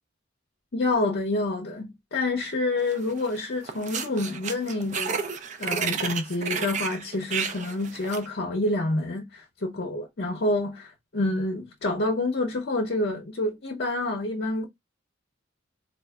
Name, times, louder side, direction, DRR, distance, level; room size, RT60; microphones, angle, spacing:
voice 1, 0.7-14.7, left 2 dB, 55° left, 0.6 m, -28 dB
sound 1, 2.9-3.4 3.6-8.3, right 6 dB, 40° right, 0.4 m, -32 dB
4.0 x 2.5 x 2.2 m
head